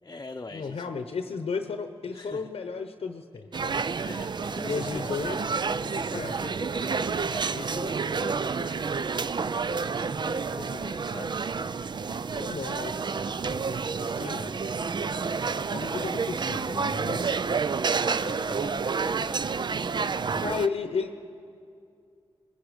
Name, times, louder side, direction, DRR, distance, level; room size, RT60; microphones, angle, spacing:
voice 1, 0.0-0.9 2.1-2.5 3.5-8.9 9.4-11.5 12.2-13.0 18.0-19.3, left 3 dB, 35° left, 3 dB, 0.8 m, -43 dB
voice 2, 0.5-3.7 4.7-5.5 6.1-6.3 12.4-13.2 13.5-13.7 14.0-14.5 15.7-17.6 20.3-21.1, left 5 dB, 75° left, 7 dB, 0.9 m, -34 dB
sound 1, 3.5-20.7, right 5 dB, 45° right, 0.4 m, -29 dB
25.0 x 20.5 x 5.1 m, 2.5 s
cardioid pair, 70°, 10 cm